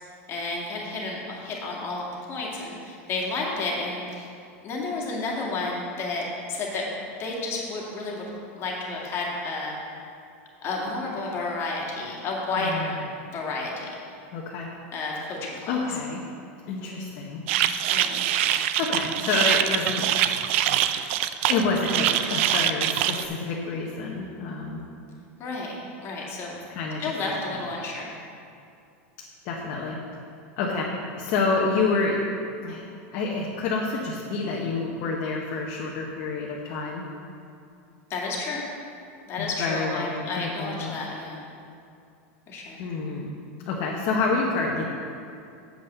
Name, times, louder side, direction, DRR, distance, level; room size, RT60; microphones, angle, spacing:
voice 1, 0.3-4.3 4.6-6.8 7.2-9.8 10.6-13.0 13.3-13.9 14.9-15.8 17.9-18.3 25.4-25.7 26.0-26.5 27.0-28.1 38.1-38.6 39.3-41.4 42.5-42.8, left 3 dB, 35° left, -3 dB, 2.1 m, -31 dB
voice 2, 12.6-12.9 14.3-14.7 15.7-16.2 16.7-17.4 18.8-20.1 21.5-24.8 26.7-27.6 29.4-30.0 30.6-30.9 31.2-32.2 32.6-32.8 33.1-37.0 39.4-40.9 42.8-43.3 43.7-44.8, left 4 dB, 55° left, -3 dB, 1.1 m, -28 dB
sound 1, 17.5-23.2, right 11 dB, 65° right, 0.4 m, -24 dB
7.7 x 5.5 x 6.6 m, 2.5 s
supercardioid pair, 125°, 7 cm